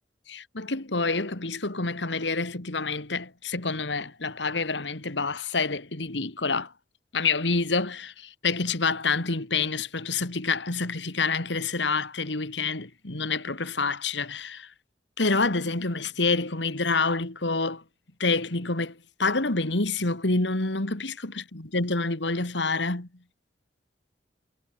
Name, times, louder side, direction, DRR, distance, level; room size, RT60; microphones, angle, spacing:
voice 1, 0.3-6.7 7.1-14.7 15.2-17.8 18.2-23.1, left 3 dB, 75° left, 2.3 m, -27 dB
head